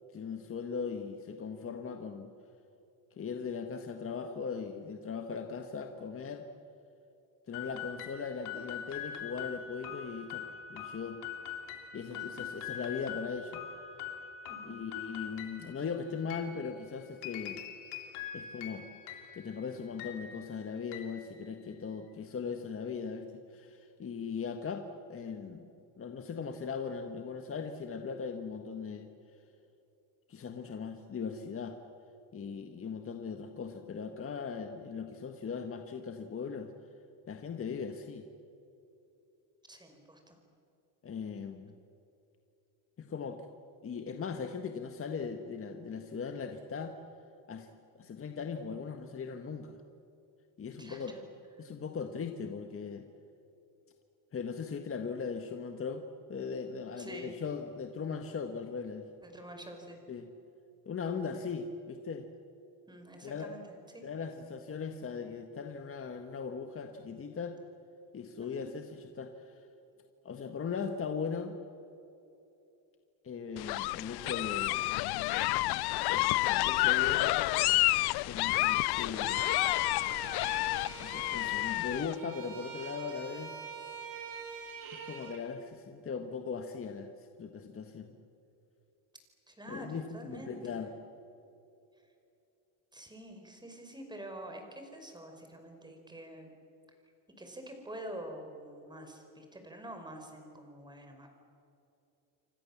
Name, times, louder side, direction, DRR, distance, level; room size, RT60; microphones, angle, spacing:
voice 1, 0.0-2.3 3.2-6.4 7.5-10.4 10.7-11.2 11.9-13.7 14.6-17.6 18.3-18.9 19.3-25.7 26.0-29.1 30.3-31.8 32.3-36.7 37.3-38.3 41.0-41.7 43.0-43.4 43.8-46.9 47.5-47.7 47.9-49.8 50.6-51.2 51.6-53.1 54.3-56.0 56.3-59.1 60.1-60.3 60.8-62.3 63.2-63.5 64.0-67.6 68.1-69.7 70.2-71.6 73.2-74.8 76.0-77.5 78.3-79.5 81.0-83.5 85.0-87.1 87.4-88.2 89.7-90.9, left 5 dB, 30° left, 5 dB, 1.6 m, -39 dB
sound 1, 7.5-22.0, left 8 dB, 90° left, 3.1 m, -44 dB
voice 2, 12.1-12.4 14.5-14.8 39.7-40.4 50.8-51.2 57.0-57.4 59.2-60.0 62.9-64.0 68.4-68.7 89.5-90.9 92.9-96.5 97.4-101.4, right 1 dB, 10° right, 4 dB, 5.3 m, -47 dB
sound 2, 73.6-82.1, left 20 dB, 60° left, 0.6 m, -29 dB
Bowed string instrument, 79.1-85.4, right 6 dB, 50° right, 4.4 m, -45 dB
29.0 x 24.5 x 7.4 m, 2.8 s
cardioid pair, 120°, 44 cm